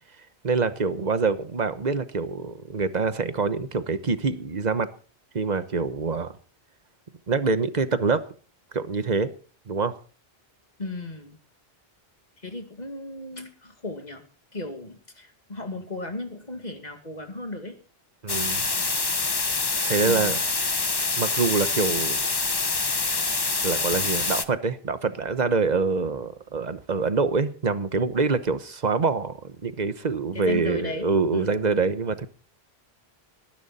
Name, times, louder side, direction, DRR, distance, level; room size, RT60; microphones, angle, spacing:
voice 1, 0.4-4.9 5.3-6.3 7.3-8.2 8.7-9.3 9.7-9.9 18.2-18.7 19.8-20.4 21.2-22.2 23.6-32.3, right 4 dB, 45° right, 12 dB, 1.1 m, -25 dB
voice 2, 10.8-11.4 12.4-14.2 14.5-17.8 20.0-20.3 30.3-31.6, left 2 dB, 40° left, 6 dB, 2.3 m, -35 dB
sound 1, 18.3-24.4, left 3 dB, 25° left, 0.8 m, -26 dB
19.0 x 11.0 x 4.2 m, 0.39 s
omnidirectional pair, 1.1 m